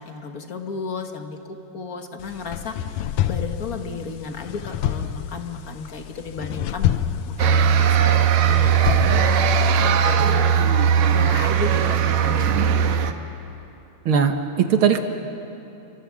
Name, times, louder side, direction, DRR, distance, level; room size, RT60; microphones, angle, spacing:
voice 1, 0.0-6.9 7.3-12.7, left 4 dB, 45° left, 5 dB, 1.3 m, -34 dB
sound 1, 2.2-9.6, left 10 dB, 75° left, 2.0 m, -28 dB
sound 2, 7.4-13.1, right 7 dB, 75° right, 2.3 m, -18 dB
voice 2, 14.0-15.0, right 7 dB, 55° right, 6 dB, 1.7 m, -19 dB
29.5 x 24.5 x 7.4 m, 2.9 s
omnidirectional pair, 3.3 m